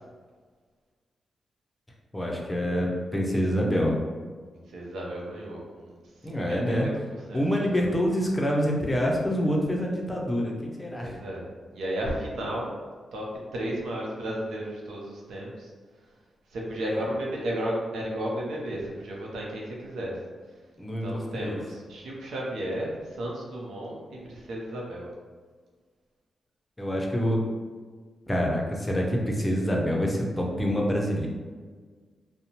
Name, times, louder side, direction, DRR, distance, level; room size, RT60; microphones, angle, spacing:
voice 1, 2.1-3.9 6.2-6.9 7.3-11.2 16.9-17.0 20.8-21.6 26.8-27.4 28.3-31.3, equal, 20° left, -1 dB, 0.6 m, -26 dB
voice 2, 4.5-5.9 6.2-6.9 7.3-7.9 11.0-11.5 11.7-12.7 13.1-15.7 16.5-20.1 21.0-25.1, right 1 dB, 85° right, -3 dB, 0.6 m, -33 dB
2.7 x 2.1 x 2.8 m, 1.5 s
cardioid pair, 60°, 0 cm